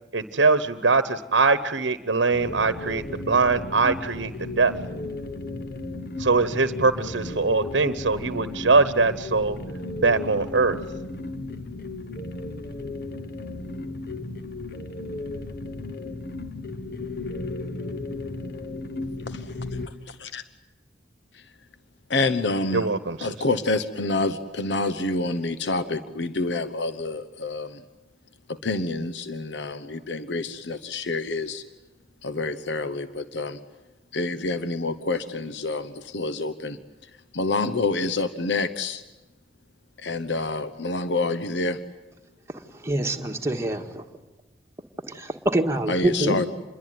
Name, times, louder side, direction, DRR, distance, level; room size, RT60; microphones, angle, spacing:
voice 1, 0.1-4.7 6.2-9.6 10.0-10.8 22.7-23.2, right 4 dB, 80° right, 12 dB, 1.0 m, -22 dB
sound 1, 2.3-19.9, left 2 dB, 55° left, 1.4 m, -35 dB
voice 2, 19.3-19.8 20.0-20.4 21.3-21.5 22.1-22.9 23.2-27.8 28.5-31.6 32.2-33.6 34.1-39.0 40.0-41.8 45.9-46.5, left 3 dB, 70° left, 11 dB, 1.0 m, -28 dB
voice 3, 42.5-44.0 45.1-46.4, right 1 dB, 15° right, 3 dB, 1.8 m, -26 dB
27.5 x 22.0 x 9.4 m, 1.1 s
head